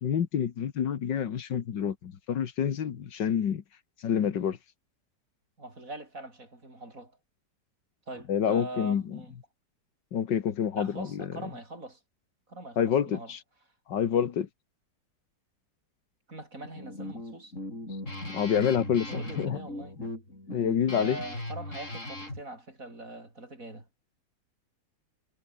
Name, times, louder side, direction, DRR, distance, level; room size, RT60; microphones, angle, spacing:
voice 1, 0.0-3.6 4.0-4.6 8.3-9.0 10.1-11.3 12.8-13.4 13.9-14.5 18.3-19.6 20.5-21.2, left 8 dB, 80° left, 2.1 m, -27 dB
voice 2, 5.6-7.1 8.1-9.3 10.7-12.0 12.5-13.3 16.3-17.5 19.0-20.0 20.9-23.9, right 2 dB, 50° right, 6.7 m, -42 dB
Guitar, 16.6-22.4, left 1 dB, 45° left, 8.5 m, -39 dB
omnidirectional pair, 1.9 m